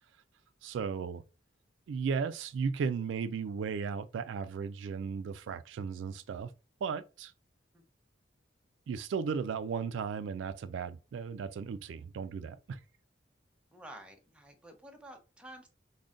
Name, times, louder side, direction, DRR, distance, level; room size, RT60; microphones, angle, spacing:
voice 1, 0.6-1.2 1.9-6.5 6.8-7.3 8.9-12.8, right 6 dB, 85° right, 0.3 m, -35 dB
voice 2, 13.7-15.7, right 1 dB, 5° right, 0.6 m, -51 dB
3.7 x 2.1 x 3.7 m
head